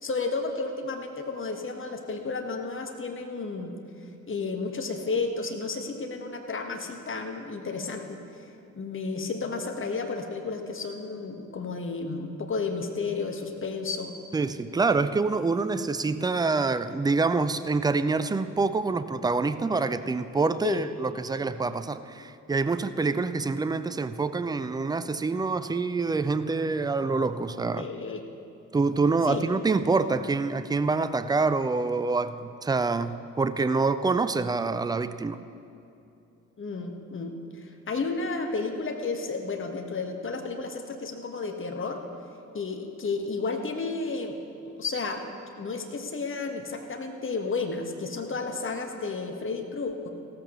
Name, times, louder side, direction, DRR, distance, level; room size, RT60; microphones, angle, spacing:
voice 1, 0.0-3.7 4.3-8.2 8.7-14.1 20.6-20.8 27.8-28.2 29.3-29.4 36.6-42.0 42.5-44.4 44.6-45.2 45.6-50.1, left 4 dB, 30° left, 4 dB, 1.5 m, -32 dB
voice 2, 14.3-27.9 28.7-35.4, right 4 dB, 10° right, 13 dB, 0.4 m, -26 dB
16.0 x 14.0 x 3.1 m, 2.7 s
figure-of-eight pair, 45°, 41 cm